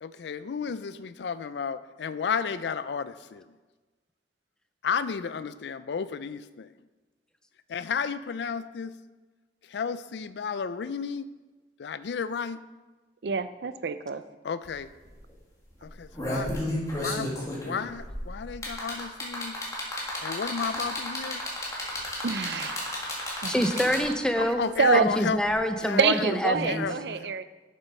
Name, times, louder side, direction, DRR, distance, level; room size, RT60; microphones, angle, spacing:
voice 1, 0.0-3.4 4.8-6.7 7.7-8.9 9.7-11.3 11.8-12.6 14.4-14.9 15.8-16.5 17.0-17.3 17.6-19.6 20.2-21.4 24.4-25.4 25.8-26.0 26.6-27.3, left 6 dB, 70° left, 14 dB, 0.4 m, -32 dB
voice 2, 13.2-14.2 22.2-22.9 23.4-23.6 24.4-25.1 26.0-27.4, right 5 dB, 65° right, 12 dB, 0.5 m, -26 dB
sound 1, 14.7-14.8 15.1-15.3 15.9-24.3 25.5-25.6, left 1 dB, 20° left, 2.0 m, -32 dB
voice 3, 23.5-24.6 24.9-26.8, equal, 5° left, 7 dB, 0.5 m, -26 dB
7.5 x 7.0 x 5.5 m, 1.3 s
head